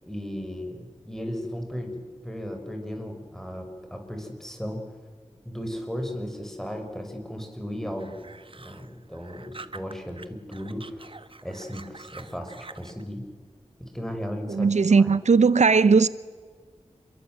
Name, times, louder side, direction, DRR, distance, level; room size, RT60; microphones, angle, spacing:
voice 1, 0.0-4.8 5.5-8.2 8.5-11.1 11.4-13.3 13.8-15.1, equal, 5° left, 5.6 m, -36 dB
sound 1, 8.0-10.2 10.5-13.0, right 3 dB, 50° right, 1.3 m, -46 dB
voice 2, 14.5-16.1, right 5 dB, 80° right, 0.7 m, -18 dB
28.0 x 22.0 x 7.9 m
wide cardioid pair, 65°, 12 cm